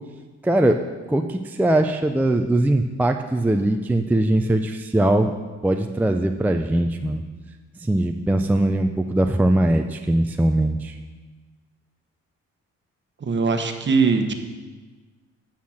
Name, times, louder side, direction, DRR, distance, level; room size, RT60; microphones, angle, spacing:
voice 1, 0.4-5.3 5.6-7.2 7.9-11.0, right 1 dB, 5° right, 5 dB, 0.4 m, -21 dB
voice 2, 13.2-14.3, right 4 dB, 40° right, 6 dB, 1.1 m, -21 dB
8.5 x 5.8 x 7.2 m, 1.3 s
cardioid pair, 90°, 30 cm